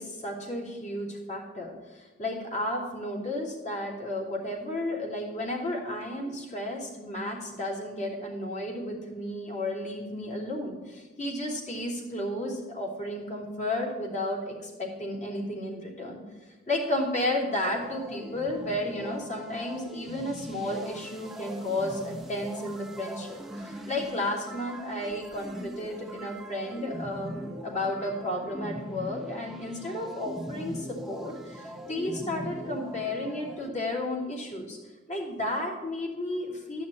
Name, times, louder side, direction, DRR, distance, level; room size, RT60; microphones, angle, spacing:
voice 1, 0.0-16.2 16.7-34.8 35.1-36.9, left 1 dB, 40° left, -2 dB, 3.0 m, -33 dB
sound 1, 17.7-33.7, equal, ahead, 0.9 m, -41 dB
12.5 x 5.7 x 8.8 m, 1.2 s
head